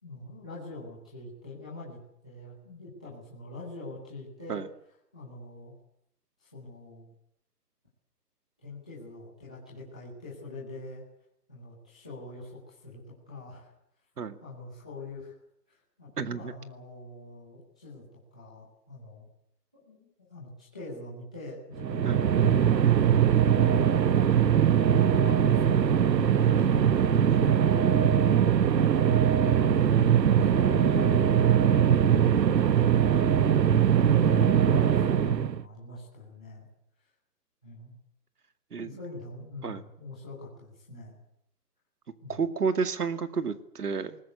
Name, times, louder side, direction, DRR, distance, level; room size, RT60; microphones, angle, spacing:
voice 1, 0.0-4.6 5.1-5.7 6.4-7.0 8.6-11.0 11.5-13.0 13.3-13.7 14.4-15.3 15.7-18.0 18.3-19.3 19.7-24.0 24.9-28.1 29.9-31.3 32.6-33.6 34.1-36.6 37.6-37.9 38.7-41.1 42.2-42.4, left 2 dB, 5° left, -10 dB, 0.9 m, -43 dB
voice 2, 16.2-16.5 22.0-22.2 38.7-39.0 39.6-39.8 42.3-44.2, right 5 dB, 65° right, 10 dB, 2.3 m, -31 dB
sound 1, 21.8-35.6, right 9 dB, 85° right, 1.1 m, -22 dB
20.5 x 20.0 x 8.0 m, 0.73 s
hypercardioid pair, 180°, 49 cm